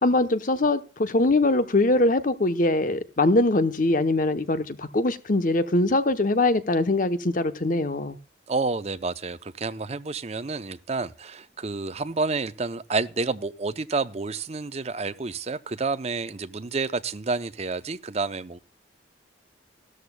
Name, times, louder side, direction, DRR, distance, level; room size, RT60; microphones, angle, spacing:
voice 1, 0.0-8.2, left 2 dB, 45° left, 0.9 m, -22 dB
voice 2, 8.5-18.6, right 3 dB, 35° right, 0.6 m, -29 dB
16.0 x 13.0 x 2.2 m
head